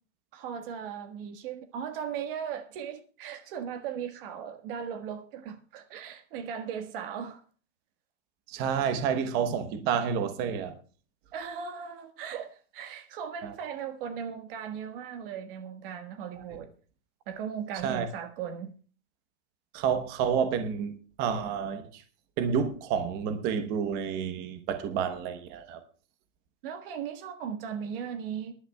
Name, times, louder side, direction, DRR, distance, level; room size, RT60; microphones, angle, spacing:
voice 1, 0.3-7.4 11.3-16.7 17.3-18.7 26.6-28.5, right 8 dB, 50° right, 1.5 m, -37 dB
voice 2, 8.5-10.7 13.4-13.5 17.8-18.1 19.7-22.0 22.4-25.8, right 7 dB, 25° right, 0.9 m, -29 dB
23.0 x 11.0 x 2.3 m
supercardioid pair, 170°, 36 cm